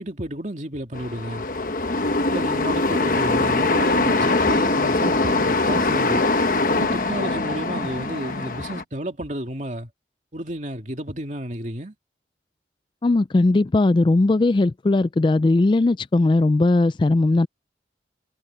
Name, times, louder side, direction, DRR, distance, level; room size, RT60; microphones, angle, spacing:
voice 1, 0.0-1.5 2.3-6.3 6.7-9.9 10.3-11.9, right 1 dB, 45° right, 2.6 m, -31 dB
sound 1, 0.9-8.8, left 2 dB, 50° left, 1.1 m, -22 dB
voice 2, 13.0-17.5, left 2 dB, 25° left, 0.3 m, -18 dB
head